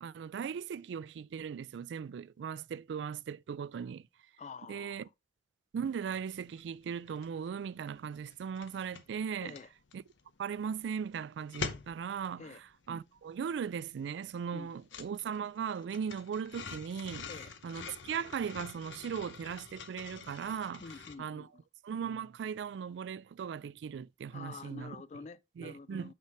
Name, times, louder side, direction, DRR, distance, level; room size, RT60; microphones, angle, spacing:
voice 1, 0.0-4.0 4.7-5.1 5.7-9.5 9.9-10.0 10.4-12.5 12.9-17.3 17.6-20.8 21.2-21.5 21.8-25.0 25.6-26.1, right 7 dB, 75° right, 0.3 m, -38 dB
voice 2, 4.4-5.1 9.4-9.7 12.4-12.6 14.5-14.7 17.3-17.5 20.8-21.6 24.3-26.1, left 4 dB, 40° left, 0.3 m, -48 dB
sound 1, 6.0-6.2 6.5-7.5 7.7-21.1, left 5 dB, 85° left, 0.8 m, -46 dB
5.8 x 4.5 x 4.5 m
head